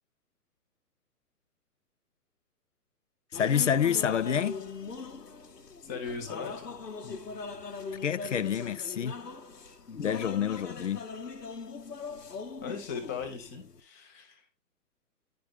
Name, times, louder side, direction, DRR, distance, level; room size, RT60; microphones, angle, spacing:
sound 1, 3.3-13.8, left 4 dB, 80° left, 1.1 m, -41 dB
voice 1, 3.3-4.6 8.0-9.2 10.0-11.0, left 8 dB, 50° left, 0.5 m, -28 dB
voice 2, 5.8-6.7 12.6-14.5, left 5 dB, 10° left, 0.6 m, -38 dB
10.5 x 5.2 x 3.6 m
figure-of-eight pair, 125°, 48 cm